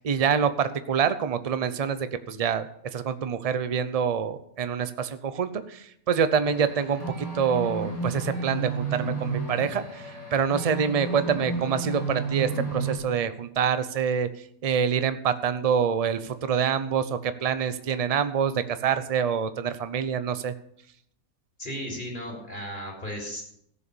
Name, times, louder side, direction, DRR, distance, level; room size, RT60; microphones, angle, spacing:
voice 1, 0.0-10.0 10.3-14.3 14.6-20.5, right 7 dB, 45° right, 12 dB, 0.5 m, -26 dB
sound 1, 6.4-13.0, right 3 dB, 65° left, 4.0 m, -32 dB
voice 2, 21.6-23.4, equal, 30° left, -1 dB, 3.7 m, -35 dB
15.0 x 6.8 x 7.0 m, 0.73 s
omnidirectional pair, 1.6 m